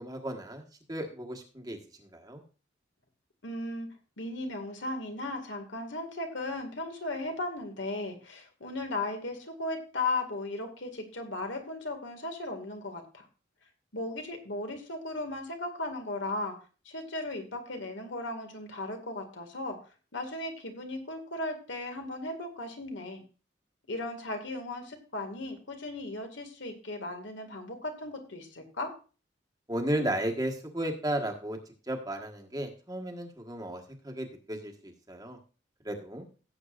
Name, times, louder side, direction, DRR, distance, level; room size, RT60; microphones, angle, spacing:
voice 1, 0.0-2.4 29.7-31.6 31.9-35.4 35.8-36.2, right 1 dB, 20° right, 3 dB, 1.4 m, -34 dB
voice 2, 3.4-3.9 4.2-13.2 13.9-16.6 16.9-19.8 20.1-23.2 23.9-28.9, left 2 dB, 80° left, 5 dB, 2.0 m, -36 dB
16.5 x 7.9 x 2.5 m, 0.34 s
head